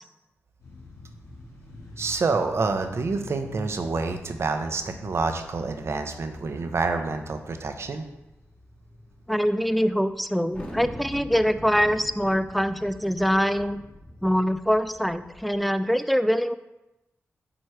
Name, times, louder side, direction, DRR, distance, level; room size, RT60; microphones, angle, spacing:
sound 1, 0.6-13.7, left 2 dB, 75° left, 1.9 m, -48 dB
voice 1, 2.0-8.0, right 4 dB, 60° right, 7 dB, 0.7 m, -27 dB
voice 2, 9.3-13.8 14.2-16.6, equal, ahead, 12 dB, 0.4 m, -24 dB
Thunder, 10.5-15.7, left 1 dB, 30° left, 1.7 m, -42 dB
8.8 x 3.1 x 4.7 m, 0.95 s
cardioid pair, 65°, 5 cm